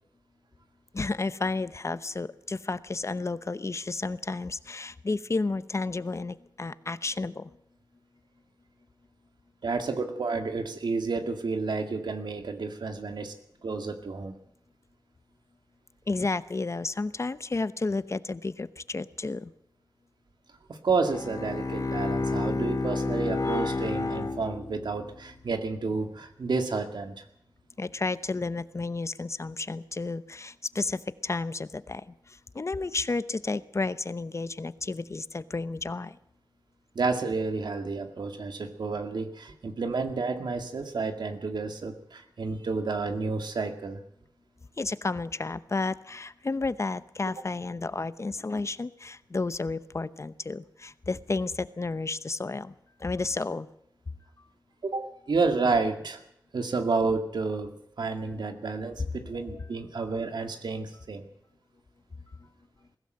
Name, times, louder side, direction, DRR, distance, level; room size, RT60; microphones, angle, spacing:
voice 1, 0.9-7.5 16.1-19.5 27.8-36.2 44.8-52.7 53.0-53.7 59.0-59.1, left 3 dB, 40° left, 14 dB, 0.8 m, -32 dB
voice 2, 9.6-13.4 13.6-14.3 20.7-27.2 37.0-44.0 54.8-56.2 56.5-61.3, right 4 dB, 85° right, 6 dB, 2.1 m, -30 dB
Bowed string instrument, 21.0-25.1, left 3 dB, 60° left, 2.3 m, -30 dB
21.0 x 16.5 x 7.9 m, 0.76 s
wide cardioid pair, 95°, 7 cm